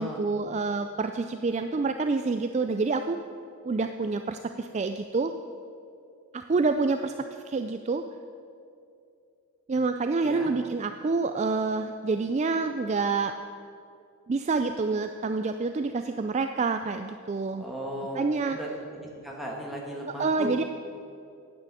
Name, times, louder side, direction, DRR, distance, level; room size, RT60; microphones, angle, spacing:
voice 1, 0.0-3.2 3.6-5.3 6.3-7.1 7.5-8.0 9.7-13.4 14.3-17.7 18.2-18.6 20.2-20.6, right 4 dB, 30° right, 7 dB, 0.3 m, -27 dB
voice 2, 10.2-10.6 17.6-18.2 18.5-18.7 19.2-20.6, equal, ahead, -2 dB, 1.7 m, -36 dB
9.4 x 9.0 x 8.2 m, 2.5 s
head